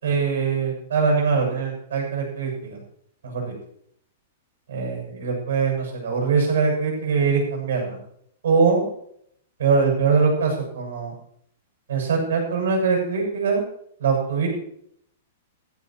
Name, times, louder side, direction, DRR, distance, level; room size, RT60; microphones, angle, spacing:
voice 1, 0.0-2.8 3.2-3.5 4.7-8.0 8.4-8.9 9.6-11.1 11.9-13.6 14.0-14.5, right 5 dB, 90° right, 1 dB, 7.6 m, -22 dB
18.0 x 14.5 x 3.2 m, 0.70 s
supercardioid pair, 175°, 0 cm